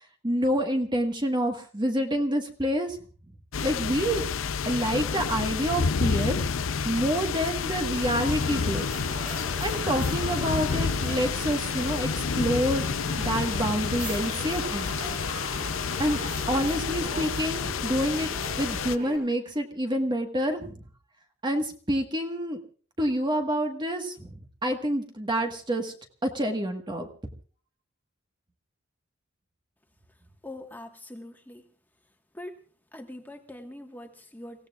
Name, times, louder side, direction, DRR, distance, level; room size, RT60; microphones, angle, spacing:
voice 1, 0.2-3.0 3.6-4.2 4.6-8.9 9.6-14.9 16.0-16.2 16.5-18.3 18.6-20.9 21.4-22.6 23.0-24.4 24.6-25.9 26.2-27.1, equal, 25° right, 3 dB, 1.6 m, -28 dB
sound 1, 3.5-19.0, left 5 dB, 85° left, 0.6 m, -29 dB
sound 2, 7.9-19.2, right 2 dB, 45° right, 6.4 m, -40 dB
voice 2, 30.4-31.7 32.3-32.6 32.9-34.7, left 1 dB, 10° left, 4 dB, 1.6 m, -43 dB
30.0 x 16.5 x 2.5 m, 0.41 s
head